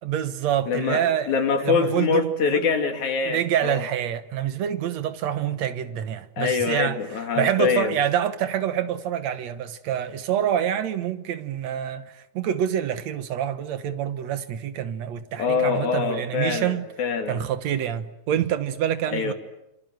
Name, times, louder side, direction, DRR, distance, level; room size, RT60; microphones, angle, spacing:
voice 1, 0.0-2.7 3.3-7.0 7.4-16.9 17.3-19.3, right 10 dB, 70° right, 2.3 m, -26 dB
voice 2, 0.7-3.8 6.4-8.0 15.4-17.4 19.1-19.3, left 5 dB, 75° left, 4.1 m, -24 dB
27.5 x 27.0 x 7.9 m
omnidirectional pair, 3.4 m